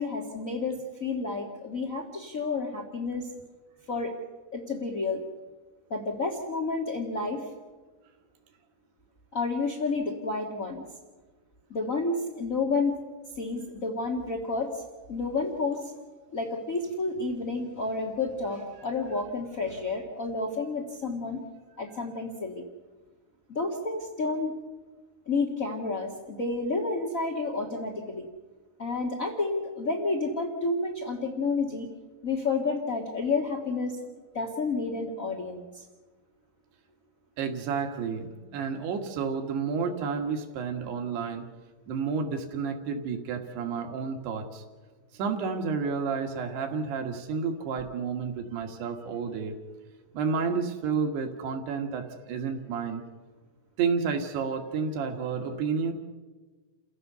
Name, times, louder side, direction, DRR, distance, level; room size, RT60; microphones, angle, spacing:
voice 1, 0.0-3.3 3.9-4.1 4.5-5.2 5.9-7.5 9.3-10.8 11.7-13.0 13.4-14.8 15.1-15.9 16.3-21.4 21.8-22.6 23.5-24.6 25.2-28.3 28.8-31.9 32.2-34.1 34.3-35.8, left 3 dB, 40° left, 1 dB, 1.2 m, -30 dB
voice 2, 37.4-41.5 41.9-44.6 45.1-49.5 50.1-53.0 53.8-55.9, right 5 dB, 90° right, 4 dB, 3.7 m, -30 dB
29.5 x 16.0 x 6.8 m, 1.3 s
omnidirectional pair, 4.6 m